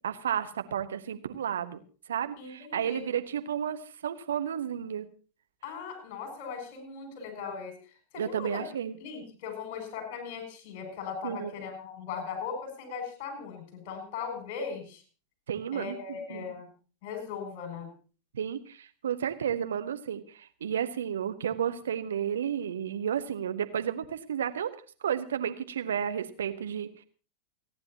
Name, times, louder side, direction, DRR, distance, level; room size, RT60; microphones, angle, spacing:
voice 1, 0.0-1.8 2.1-5.1 8.2-9.0 11.2-11.5 15.5-16.5 18.3-27.0, right 9 dB, 65° right, 9 dB, 1.1 m, -32 dB
voice 2, 2.4-3.1 5.6-7.7 8.1-8.6 9.0-15.0 15.7-16.7 17.0-17.9, left 6 dB, 45° left, 6 dB, 6.5 m, -38 dB
29.5 x 10.5 x 2.9 m, 0.37 s
figure-of-eight pair, 90°, 0 cm